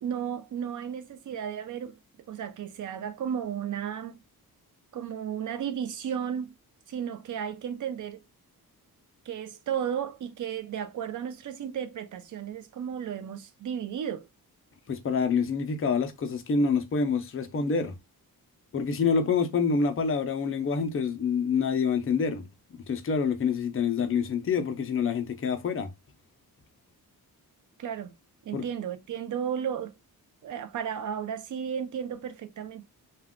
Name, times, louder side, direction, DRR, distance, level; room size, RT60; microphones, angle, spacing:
voice 1, 0.0-2.0 2.3-4.2 4.9-6.6 6.9-8.2 9.3-14.3 27.8-28.1 28.5-29.9 30.4-32.8, right 8 dB, 55° right, 0.4 m, -34 dB
voice 2, 14.9-17.9 18.7-22.5 22.7-25.9 28.5-28.6, left 5 dB, 35° left, 0.5 m, -27 dB
2.3 x 2.3 x 3.5 m
wide cardioid pair, 175°, 37 cm